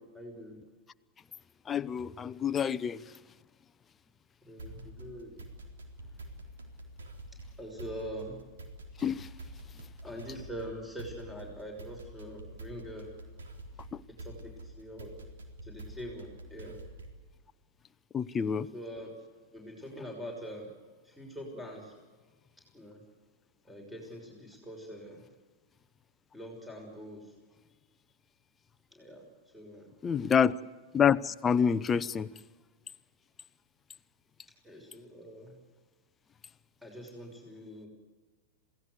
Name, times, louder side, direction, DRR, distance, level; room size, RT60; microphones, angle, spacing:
voice 1, 0.1-0.6 4.4-5.3 7.6-8.4 10.0-13.1 14.2-15.1 15.6-16.8 18.7-19.1 19.5-20.7 21.0-21.9 22.7-23.0 23.6-25.2 26.3-27.3 28.9-29.2 29.5-29.9 34.6-35.6 36.8-37.9, equal, 5° right, 1 dB, 6.2 m, -43 dB
voice 2, 1.7-3.0 9.0-9.3 18.1-18.7 30.0-30.5 30.9-32.3, left 7 dB, 20° left, 12 dB, 0.8 m, -27 dB
sound 1, 4.6-17.3, right 1 dB, 75° right, 3.9 m, -47 dB
27.5 x 18.0 x 8.2 m, 1.4 s
hypercardioid pair, 100°, 0 cm